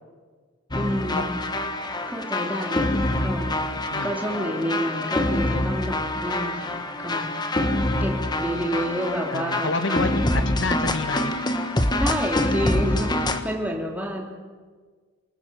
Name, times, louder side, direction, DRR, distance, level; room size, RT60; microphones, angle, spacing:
sound 1, 0.7-13.4, left 1 dB, 20° left, 1.5 m, -25 dB
voice 1, 0.7-1.4 2.1-3.6 4.0-7.3 8.0-10.2 12.0-14.4, equal, 10° right, 0 dB, 3.2 m, -29 dB
voice 2, 9.3-11.3, left 3 dB, 70° left, 11 dB, 1.3 m, -28 dB
28.0 x 19.5 x 7.6 m, 1.5 s
head